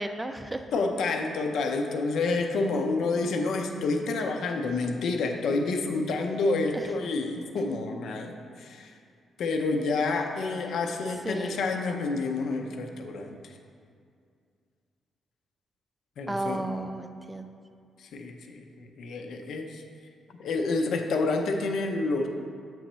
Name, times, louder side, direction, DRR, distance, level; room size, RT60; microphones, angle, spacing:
voice 1, 0.0-0.7 6.7-6.9 11.2-11.7 16.3-17.5, right 1 dB, 10° right, 7 dB, 0.4 m, -33 dB
voice 2, 0.7-8.9 9.4-13.5 16.2-16.6 18.0-19.8 20.4-22.3, left 3 dB, 75° left, 4 dB, 0.6 m, -29 dB
7.5 x 3.1 x 5.3 m, 2.3 s
cardioid pair, 75°, 0 cm